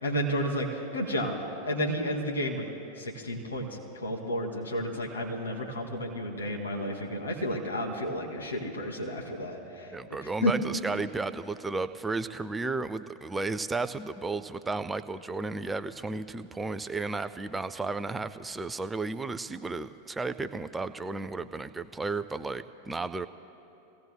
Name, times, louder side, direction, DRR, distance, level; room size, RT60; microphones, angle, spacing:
voice 1, 0.0-1.4 1.6-2.7 3.0-3.7 4.0-10.5, equal, 75° left, -1 dB, 2.4 m, -31 dB
voice 2, 9.9-23.3, right 3 dB, 10° right, 12 dB, 0.4 m, -33 dB
27.5 x 17.5 x 2.2 m, 2.8 s
figure-of-eight pair, 90°, 0 cm